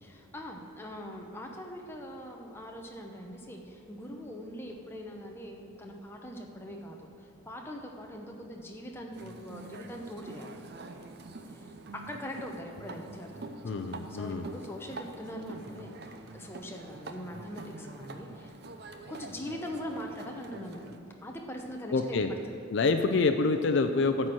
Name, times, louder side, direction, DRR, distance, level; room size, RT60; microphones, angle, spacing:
voice 1, 0.0-10.5 11.5-13.5 14.1-18.5 19.1-20.9 21.2-22.4, equal, 10° left, 1 dB, 0.8 m, -42 dB
sound 1, 9.1-21.0, right 2 dB, 50° right, 0.6 m, -46 dB
voice 2, 13.6-14.5 21.9-22.3 22.7-24.3, left 3 dB, 60° left, 7 dB, 0.4 m, -27 dB
12.5 x 4.3 x 7.6 m, 2.7 s
head